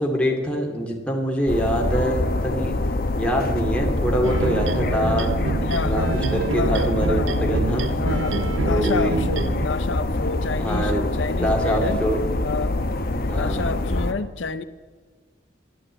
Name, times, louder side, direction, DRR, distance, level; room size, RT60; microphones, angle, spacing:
voice 1, 0.0-2.7 3.2-5.3 5.8-6.1 6.3-7.9 8.1-8.2 8.6-9.2 10.6-11.1 11.3-12.2 13.2-13.7, equal, 5° left, 0 dB, 2.3 m, -24 dB
sound 1, 1.5-14.1, left 2 dB, 50° left, 0.9 m, -25 dB
sound 2, 4.2-9.7, right 4 dB, 75° right, 0.5 m, -28 dB
voice 2, 5.7-6.2 6.5-12.0 12.4-12.8 13.3-14.6, left 4 dB, 75° left, 11 dB, 0.7 m, -29 dB
11.5 x 11.0 x 8.8 m, 1.4 s
head